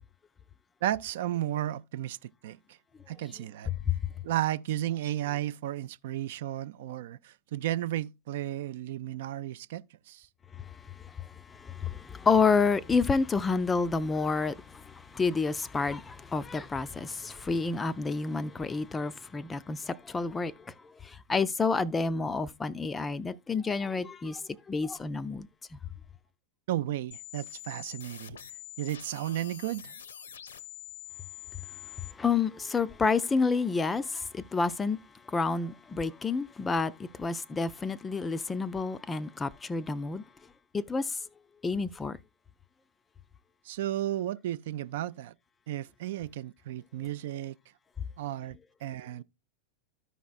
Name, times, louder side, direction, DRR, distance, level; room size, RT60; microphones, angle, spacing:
voice 1, 0.8-2.6 3.1-3.7 4.2-10.3 26.7-28.4 28.8-29.9 43.6-45.3 45.7-47.6 48.2-49.2, right 13 dB, 55° right, 0.4 m, -33 dB
voice 2, 11.7-20.5 21.3-24.4 24.7-25.5 32.2-35.0 35.3-36.9 37.2-40.2 40.7-41.1 41.6-42.2, left 4 dB, 15° left, 0.4 m, -29 dB
sound 1, 27.1-32.1, left 11 dB, 65° left, 0.7 m, -45 dB
14.0 x 5.0 x 2.4 m
figure-of-eight pair, 90°, 0 cm